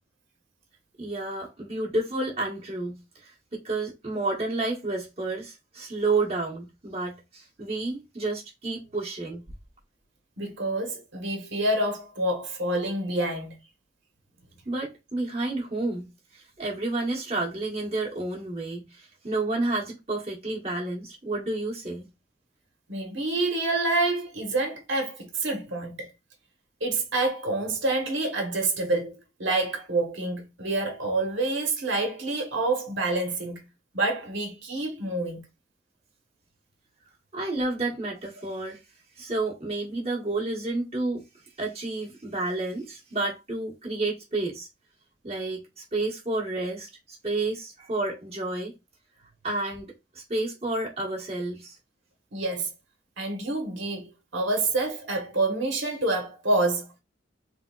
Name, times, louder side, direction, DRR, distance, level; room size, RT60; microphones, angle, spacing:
voice 1, 1.0-9.4 14.6-22.1 37.3-38.8 39.2-41.2 41.6-44.7 45.2-46.9 47.2-48.7 49.4-51.8, right 2 dB, 35° right, 1.4 m, -30 dB
voice 2, 10.4-13.6 22.9-26.1 26.8-33.6 33.9-35.4 52.3-52.7 53.2-57.0, right 2 dB, 75° right, 1.3 m, -27 dB
3.5 x 3.5 x 2.4 m
head